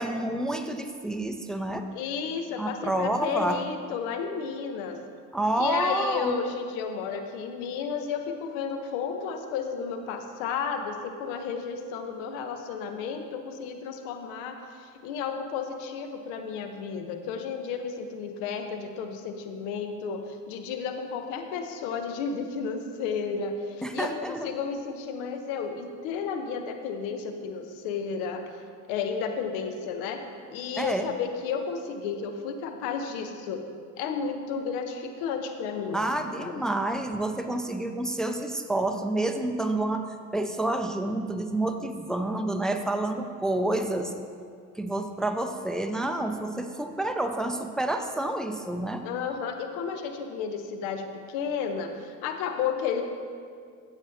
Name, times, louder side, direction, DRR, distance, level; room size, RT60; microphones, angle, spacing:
voice 1, 0.0-1.9 2.6-3.6 5.3-6.3 23.8-24.6 30.8-31.0 35.9-44.1 44.8-49.0, right 1 dB, ahead, 6 dB, 0.6 m, -29 dB
voice 2, 1.9-5.0 5.6-28.5 28.9-30.2 30.5-33.6 34.0-36.0 36.4-36.6 49.0-53.0, left 6 dB, 65° left, 6 dB, 1.0 m, -32 dB
15.5 x 7.1 x 2.8 m, 2.2 s
figure-of-eight pair, 60°, 41 cm